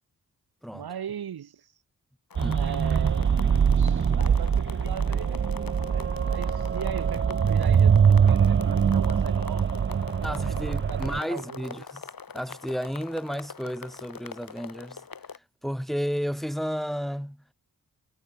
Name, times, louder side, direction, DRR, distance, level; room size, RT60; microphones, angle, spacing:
voice 1, 0.7-1.7 2.5-3.4 3.8-5.5 5.9-9.8 10.2-10.3 10.7-11.9, right 8 dB, 80° right, 1.8 m, -39 dB
sound 1, 2.3-15.4, left 6 dB, 65° left, 6.3 m, -43 dB
sound 2, 2.4-11.2, right 7 dB, 30° right, 0.5 m, -23 dB
voice 2, 10.2-12.0 12.3-15.0 15.6-17.5, equal, ahead, 6.0 m, -32 dB
cardioid pair, 45°, 37 cm